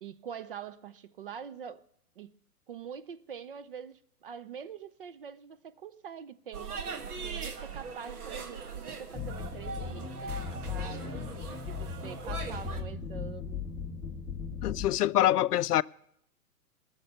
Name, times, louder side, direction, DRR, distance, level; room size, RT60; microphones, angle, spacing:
voice 1, 0.0-1.8 2.2-2.3 2.7-11.1 11.7-13.7, right 7 dB, 40° right, 0.4 m, -44 dB
sound 1, 6.5-12.8, right 5 dB, 70° right, 1.8 m, -41 dB
sound 2, 9.1-14.9, left 6 dB, 5° left, 0.6 m, -37 dB
voice 2, 14.6-15.8, left 13 dB, 80° left, 0.5 m, -25 dB
18.0 x 6.6 x 6.7 m
hypercardioid pair, 140°, 46 cm